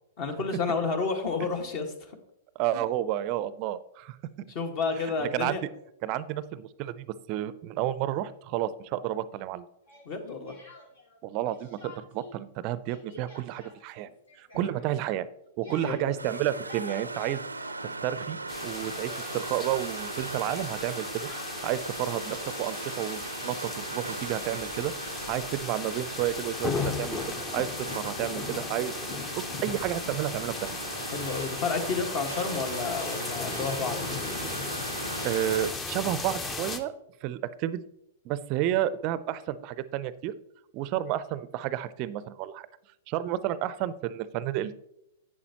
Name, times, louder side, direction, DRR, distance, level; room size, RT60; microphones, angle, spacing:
voice 1, 0.2-1.9 2.7-2.8 4.5-5.6 10.0-10.5 14.5-14.6 15.6-16.2 31.1-34.0, left 4 dB, 40° left, 5 dB, 1.6 m, -30 dB
voice 2, 2.6-4.2 5.0-5.6 6.0-9.6 11.2-14.1 14.4-15.3 15.6-17.4 17.8-21.3 21.6-27.7 27.9-28.9 29.4-30.7 35.2-36.9 37.2-37.8 38.2-40.3 40.7-42.7 43.1-44.7, right 12 dB, 40° right, 16 dB, 0.5 m, -31 dB
Speech, 9.9-11.2 11.5-12.3 12.6-18.3 18.6-22.0, left 1 dB, 65° left, 2.9 m, -49 dB
sound 1, 16.2-35.7, right 2 dB, 85° right, 0.5 m, -38 dB
sound 2, 18.5-36.8, left 4 dB, 20° left, 0.9 m, -36 dB
11.0 x 8.5 x 3.0 m, 0.80 s
figure-of-eight pair, 105°, 0 cm